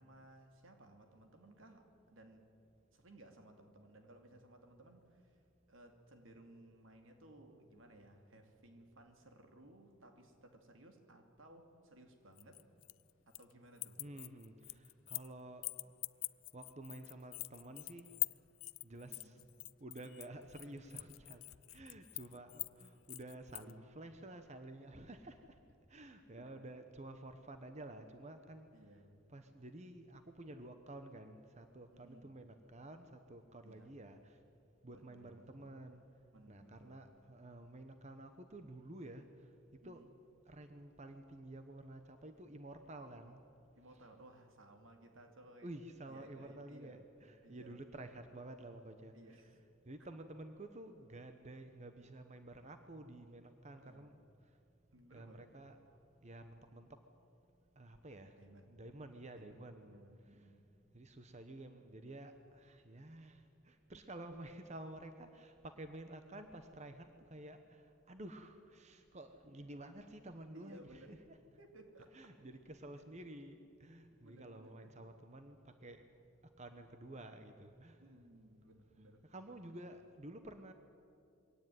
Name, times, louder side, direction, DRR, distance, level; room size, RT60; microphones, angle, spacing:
voice 1, 0.0-2.5 2.9-5.4 5.7-12.6 13.3-14.0 19.0-19.4 21.8-21.9 26.4-26.7 28.5-29.2 31.9-32.3 33.6-33.9 34.8-35.7 36.3-37.1 39.8-40.1 43.1-43.2 43.8-47.1 47.4-47.8 49.1-49.6 53.7-54.1 54.9-55.5 58.4-58.7 59.4-59.6 59.9-60.7 70.5-71.2 71.6-72.2 74.2-74.9 78.0-79.3, right 1 dB, 80° right, 5 dB, 2.7 m, -60 dB
sound 1, 12.4-13.5 13.8-15.3 15.6-23.7, left 23 dB, 80° left, 0.4 m, -44 dB
voice 2, 14.0-15.9 16.5-18.1 18.8-19.4 19.8-21.4 21.7-25.6 25.9-28.7 29.3-34.4 34.8-36.0 36.5-39.3 39.8-40.0 40.5-43.4 43.9-44.1 45.6-49.6 49.8-54.2 55.1-55.8 56.2-56.9 57.8-58.4 58.7-60.0 60.3-60.5 60.9-71.4 72.1-76.0 76.6-78.0 79.2-80.7, right 1 dB, 35° right, 7 dB, 1.0 m, -51 dB
22.5 x 17.5 x 9.4 m, 2.5 s
head